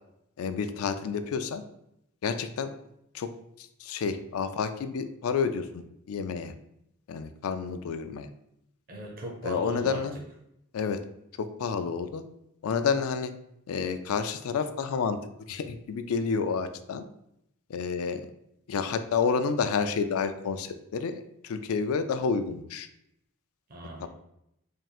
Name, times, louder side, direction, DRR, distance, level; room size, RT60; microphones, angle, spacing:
voice 1, 0.4-1.6 2.2-2.7 3.1-3.3 3.6-6.5 7.1-8.3 9.4-10.2 10.7-11.0 11.4-12.2 12.6-13.3 13.7-15.2 15.5-17.0 17.7-18.2 18.7-22.9 24.0-24.1, left 5 dB, 65° left, 10 dB, 0.4 m, -29 dB
voice 2, 8.9-10.0 23.7-24.1, equal, 40° right, -1 dB, 0.6 m, -37 dB
3.6 x 2.4 x 4.2 m, 0.79 s
head